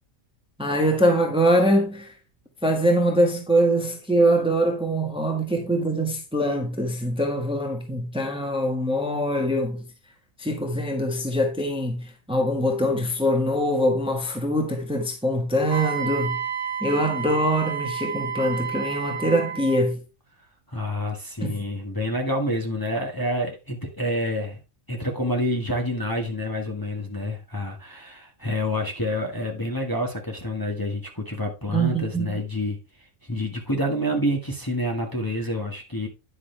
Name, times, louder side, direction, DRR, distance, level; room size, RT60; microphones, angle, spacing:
voice 1, 0.6-2.1 2.6-9.9 10.4-16.4 16.8-20.0 21.4-21.6 31.7-32.4, equal, 5° right, 1.4 m, -23 dB
Wind instrument woodwind instrument, 15.7-19.8, right 7 dB, 40° right, 2.2 m, -30 dB
voice 2, 20.7-24.6 24.9-32.8 33.2-36.1, left 1 dB, 15° left, 1.5 m, -28 dB
9.9 x 6.2 x 3.3 m
omnidirectional pair, 1.4 m